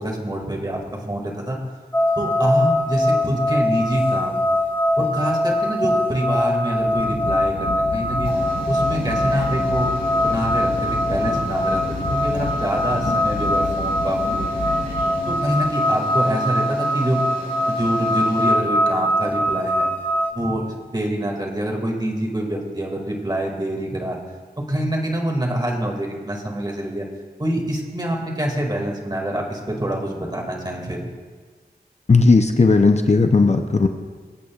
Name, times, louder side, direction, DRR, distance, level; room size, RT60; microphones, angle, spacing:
voice 1, 0.0-1.6 2.2-4.4 5.0-8.3 8.6-9.9 10.2-14.7 15.3-17.2 17.7-19.9 20.3-24.2 24.6-27.1 27.4-31.0, right 1 dB, 25° right, 0 dB, 2.1 m, -25 dB
sound 1, 1.9-20.3, left 1 dB, 10° left, 0.8 m, -22 dB
sound 2, 3.9-4.4 6.0-6.1 8.2-18.5, equal, 60° right, 2.9 m, -36 dB
sound 3, 6.7-15.8, left 4 dB, 80° left, 0.8 m, -31 dB
voice 2, 32.1-33.9, left 3 dB, 40° left, 6 dB, 0.6 m, -15 dB
24.5 x 8.4 x 2.4 m, 1.5 s
wide cardioid pair, 70°, 17 cm